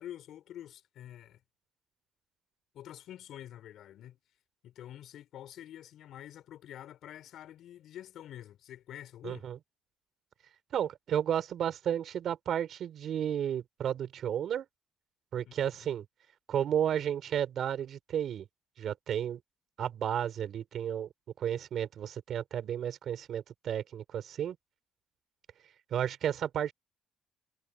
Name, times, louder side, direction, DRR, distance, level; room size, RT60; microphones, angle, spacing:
voice 1, 0.0-1.4 2.7-4.2 4.6-9.5 15.4-15.9, left 11 dB, 65° left, 5.6 m, -47 dB
voice 2, 9.2-9.6 10.7-14.6 15.3-16.0 16.5-18.5 18.8-19.4 19.8-21.1 21.4-24.6 25.9-26.7, right 9 dB, 50° right, 4.3 m, -32 dB
cardioid pair, 170°, 0 cm